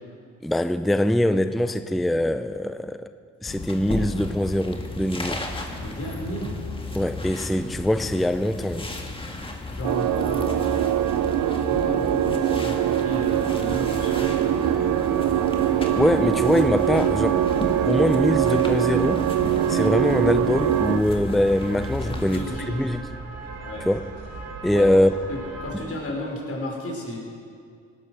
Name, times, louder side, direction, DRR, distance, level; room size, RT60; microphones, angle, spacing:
voice 1, 0.4-3.1 3.4-5.4 6.9-8.9 16.0-17.4 17.9-19.3 19.7-23.0 23.9-24.0 24.6-25.1, left 1 dB, ahead, 0.5 m, -23 dB
sound 1, 3.5-22.5, left 2 dB, 15° left, 1.8 m, -34 dB
voice 2, 5.8-6.5 9.7-10.9 11.5-14.8 22.0-22.7 23.6-23.9 24.7-24.9 25.3-27.2, left 1 dB, 50° left, 5.0 m, -33 dB
sound 2, 9.8-21.0, right 11 dB, 80° right, 0.6 m, -23 dB
sound 3, 13.1-25.8, right 3 dB, 55° right, 2.5 m, -39 dB
18.5 x 11.0 x 6.4 m
cardioid pair, 90°, 30 cm